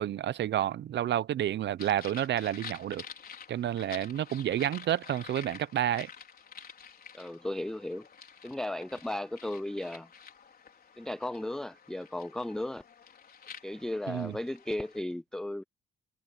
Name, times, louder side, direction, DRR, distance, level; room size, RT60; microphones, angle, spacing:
voice 1, 0.0-3.0 3.5-6.1 14.1-14.3, right 11 dB, 60° right, 0.8 m, -30 dB
sound 1, 1.8-15.0, left 7 dB, 50° left, 4.8 m, -49 dB
voice 2, 7.1-8.1 8.4-10.1 11.0-12.8 13.6-15.6, left 1 dB, 5° left, 0.4 m, -35 dB
cardioid pair, 90°, 20 cm